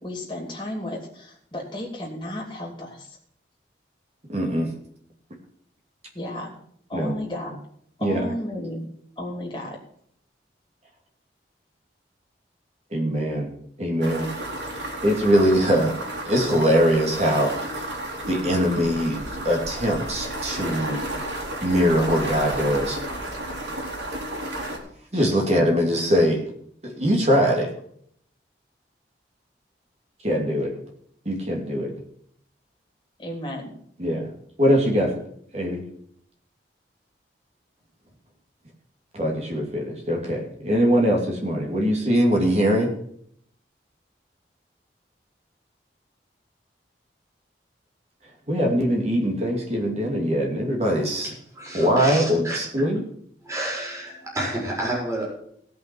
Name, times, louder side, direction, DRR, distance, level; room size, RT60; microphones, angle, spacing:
voice 1, 0.0-3.2 6.1-6.5 6.9-7.6 8.0-8.8 9.2-9.8 25.3-25.5 33.2-33.7, left 1 dB, 25° left, -1 dB, 2.8 m, -33 dB
voice 2, 4.3-4.7 6.9-7.1 8.0-8.3 12.9-13.5 13.8-14.3 15.0-16.0 16.2-17.5 18.3-21.1 21.6-23.0 25.1-26.4 26.8-27.7 30.2-30.7 31.2-31.9 34.0-34.3 34.6-35.2 35.5-35.8 39.1-42.9 48.5-51.4 51.7-53.0, equal, 35° right, 0 dB, 2.7 m, -22 dB
sound 1, 14.0-24.8, right 1 dB, 90° right, 3.2 m, -32 dB
voice 3, 51.5-52.9 53.4-55.2, right 1 dB, 15° right, -4 dB, 4.6 m, -30 dB
17.5 x 5.9 x 6.1 m, 0.66 s
head